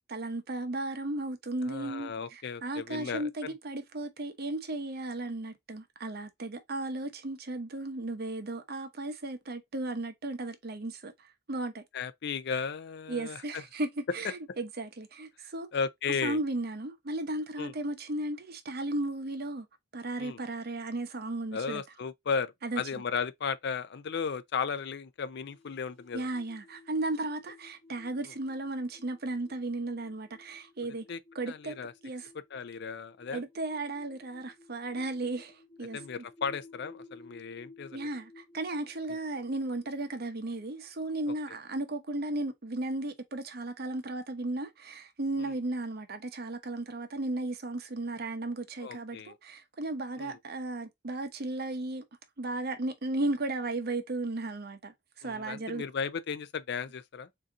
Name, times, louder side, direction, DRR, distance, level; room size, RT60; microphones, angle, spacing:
voice 1, 0.1-11.8 13.1-15.7 16.1-19.7 19.9-21.8 22.6-22.8 26.1-31.1 31.3-31.8 32.0-32.3 33.3-36.2 37.9-52.0 52.4-55.8, right 2 dB, 55° right, 0.8 m, -35 dB
voice 2, 1.6-3.5 11.9-13.6 15.7-16.4 17.6-17.7 20.2-20.4 21.5-26.3 31.1-31.2 31.5-31.9 32.5-33.4 35.9-38.0 39.1-39.2 41.3-41.4 45.4-45.5 48.8-49.4 50.2-50.4 55.2-57.3, left 6 dB, 60° left, 0.5 m, -35 dB
sound 1, 25.5-41.8, left 3 dB, 30° left, 1.2 m, -56 dB
3.8 x 2.8 x 3.5 m
head